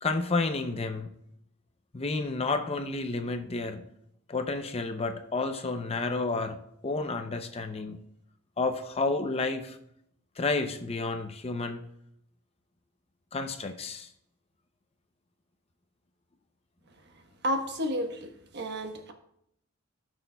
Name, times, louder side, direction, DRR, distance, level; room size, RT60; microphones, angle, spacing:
voice 1, 0.0-1.1 1.9-3.8 4.3-8.0 8.6-9.8 10.4-11.8 13.3-14.1, left 3 dB, 30° left, 7 dB, 0.5 m, -31 dB
voice 2, 17.4-19.1, equal, 50° right, 5 dB, 1.1 m, -31 dB
16.5 x 6.2 x 2.2 m, 0.76 s
head